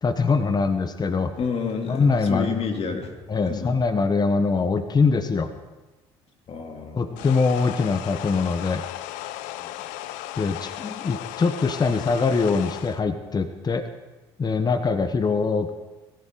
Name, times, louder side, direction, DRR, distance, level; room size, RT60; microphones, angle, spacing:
voice 1, 0.0-1.3 1.9-2.8 3.3-5.5 6.9-8.8 10.4-13.9 14.4-15.7, left 4 dB, 30° left, 9 dB, 1.3 m, -23 dB
voice 2, 1.4-3.2 3.5-3.8 6.5-7.3 9.6-9.7, left 5 dB, 50° left, 3 dB, 2.9 m, -30 dB
sound 1, 7.2-13.0, left 14 dB, 75° left, 0.6 m, -36 dB
22.0 x 15.0 x 3.9 m, 1.1 s
hypercardioid pair, 60°, 13 cm